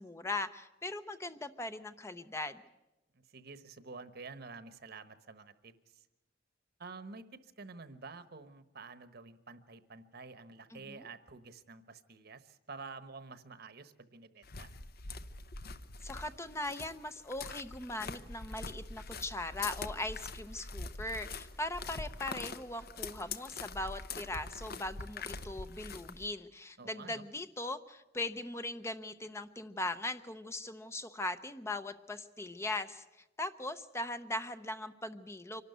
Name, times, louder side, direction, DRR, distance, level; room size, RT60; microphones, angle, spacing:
voice 1, 0.0-2.6 10.7-11.1 16.0-33.0 33.4-35.6, left 2 dB, 15° left, 10 dB, 0.7 m, -40 dB
voice 2, 3.1-6.0 6.8-14.7 26.8-27.2, right 4 dB, 55° right, 12 dB, 1.2 m, -49 dB
sound 1, 14.4-26.3, left 4 dB, 55° left, 0.9 m, -44 dB
24.5 x 12.5 x 9.3 m, 0.97 s
head